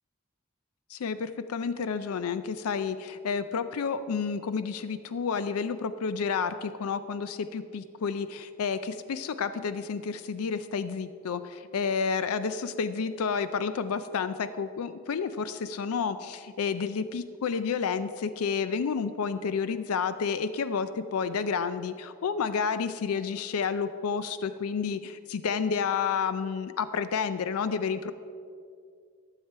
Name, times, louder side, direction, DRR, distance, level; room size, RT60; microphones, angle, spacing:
voice 1, 0.9-28.1, left 5 dB, 85° left, 12 dB, 0.4 m, -30 dB
12.5 x 7.4 x 4.5 m, 2.3 s
head